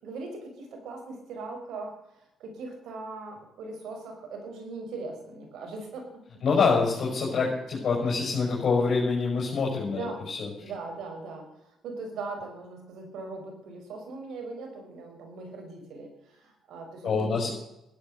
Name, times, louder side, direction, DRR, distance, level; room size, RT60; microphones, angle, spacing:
voice 1, 0.0-6.2 9.8-10.3 10.6-11.5 11.8-17.5, right 3 dB, 75° right, 3 dB, 5.5 m, -40 dB
voice 2, 6.4-10.5 17.0-17.5, left 4 dB, 60° left, -3 dB, 6.4 m, -26 dB
15.5 x 12.0 x 6.8 m, 0.85 s
cardioid pair, 90°, 0 cm